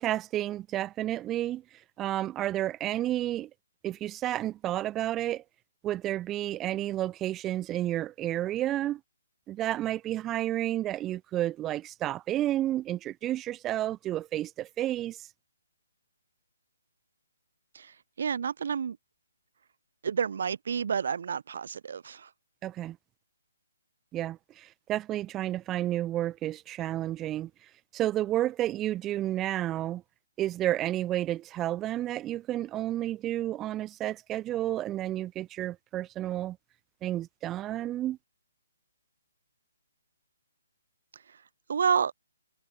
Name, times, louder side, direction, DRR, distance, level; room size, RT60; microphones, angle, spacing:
voice 1, 0.0-1.6 2.0-3.5 3.8-5.4 5.8-9.0 9.5-15.2 22.6-23.0 24.1-27.5 27.9-30.0 30.4-36.6 37.0-38.2, right 13 dB, 10° right, 0.7 m, -31 dB
voice 2, 18.2-19.0 20.0-22.3 41.7-42.1, right 7 dB, 50° right, 0.6 m, -29 dB
hypercardioid pair, 175°, 0 cm